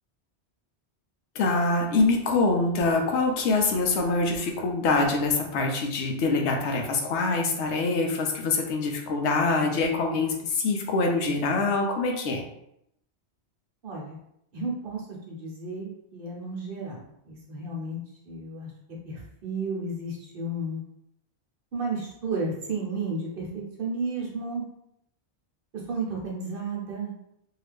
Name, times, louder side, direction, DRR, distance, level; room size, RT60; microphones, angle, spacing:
voice 1, 1.4-12.4, left 3 dB, 85° left, 3 dB, 0.9 m, -25 dB
voice 2, 13.8-14.2 14.5-15.0 15.3-17.0 17.2-18.0 18.2-18.7 19.0-20.8 21.7-23.5 23.8-24.6 25.9-27.1, right 3 dB, 60° right, -2 dB, 0.9 m, -32 dB
2.7 x 2.4 x 3.3 m, 0.77 s
omnidirectional pair, 1.1 m